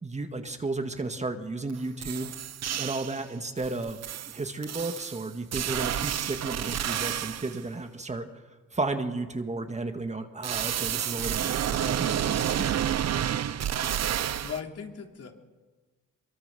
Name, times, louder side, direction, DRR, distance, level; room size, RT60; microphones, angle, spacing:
voice 1, 0.0-2.3 2.8-8.4 8.7-12.8, right 3 dB, 20° right, 7 dB, 1.9 m, -33 dB
sound 1, 1.7-1.8 2.0-3.2 3.6-7.6 10.4-14.6, right 10 dB, 60° right, 1.0 m, -30 dB
voice 2, 14.4-15.3, left 7 dB, 55° left, 3 dB, 3.4 m, -37 dB
24.0 x 23.0 x 6.9 m, 1.3 s
cardioid pair, 90°, 30 cm